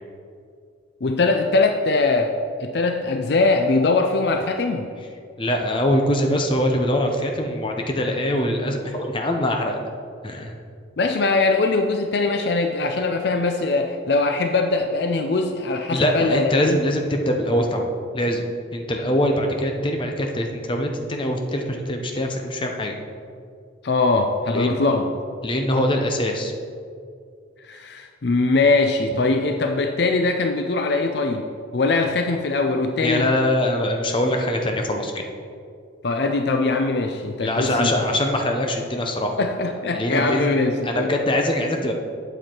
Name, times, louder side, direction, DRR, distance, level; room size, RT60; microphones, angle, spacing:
voice 1, 1.0-2.3 2.6-4.9 11.0-16.8 23.8-25.0 27.7-33.3 36.0-37.9 39.4-41.1, left 3 dB, 55° left, 5 dB, 0.5 m, -21 dB
voice 2, 5.4-9.8 10.2-10.5 15.9-18.4 18.7-23.0 24.5-24.8 25.4-26.5 33.0-35.2 37.4-39.4 39.9-40.6 40.8-41.9, left 1 dB, 25° left, 3 dB, 0.7 m, -23 dB
8.8 x 7.2 x 4.5 m, 2.3 s
head